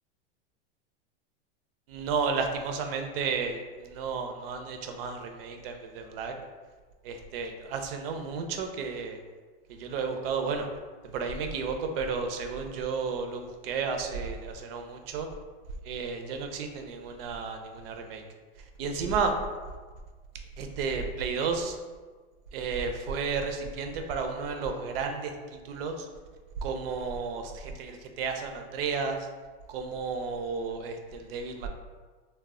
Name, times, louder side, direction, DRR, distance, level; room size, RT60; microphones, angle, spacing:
voice 1, 1.9-6.3 7.0-9.2 9.7-10.7 11.0-15.3 15.8-18.2 18.8-19.3 20.6-21.8 22.5-26.1 26.6-29.2 29.7-31.7, right 5 dB, 70° right, 5 dB, 0.5 m, -32 dB
2.1 x 2.0 x 3.5 m, 1.4 s
supercardioid pair, 135°, 31 cm